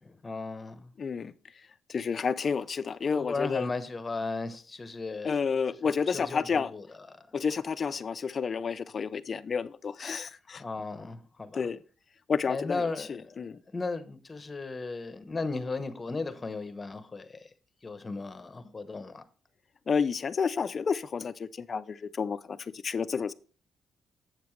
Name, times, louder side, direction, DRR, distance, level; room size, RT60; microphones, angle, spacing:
voice 1, 0.0-0.9 3.1-5.4 6.1-7.3 10.6-11.6 12.5-17.5 17.8-19.2, left 3 dB, 25° left, 1.0 m, -36 dB
voice 2, 1.0-1.3 1.9-3.7 5.2-6.7 7.3-10.6 11.5-11.8 12.3-13.6 19.9-23.3, left 6 dB, 45° left, 0.5 m, -30 dB
8.0 x 6.8 x 3.2 m
cardioid pair, 90°, 0 cm